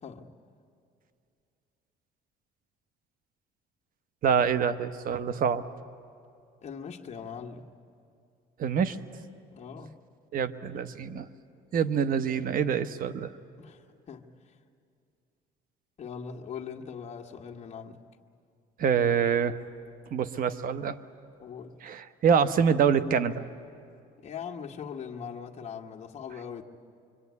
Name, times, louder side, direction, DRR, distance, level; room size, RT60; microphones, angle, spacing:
voice 1, 0.0-0.3 6.6-7.7 9.5-10.0 13.6-14.3 16.0-18.0 21.4-21.8 24.2-26.6, left 7 dB, 40° left, 1 dB, 1.7 m, -41 dB
voice 2, 4.2-5.6 8.6-9.0 10.3-11.3 11.7-13.3 18.8-19.6 20.1-21.0 21.8-23.4, right 7 dB, 55° right, 12 dB, 1.2 m, -26 dB
24.5 x 24.5 x 9.7 m, 2.4 s
cardioid pair, 110°, 17 cm